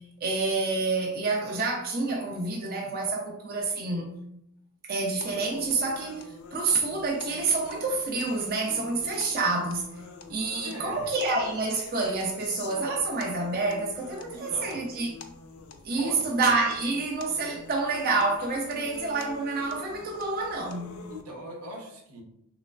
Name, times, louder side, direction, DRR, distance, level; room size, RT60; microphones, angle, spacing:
voice 1, 0.2-4.1 4.8-9.9 10.3-15.1 15.8-21.0, right 3 dB, 45° right, 0.4 m, -28 dB
sound 1, 5.2-21.2, left 5 dB, 75° left, 0.4 m, -46 dB
voice 2, 10.6-11.1 14.3-14.8 16.0-16.4 21.1-22.2, equal, 80° right, 0.7 m, -41 dB
3.2 x 3.0 x 2.3 m
head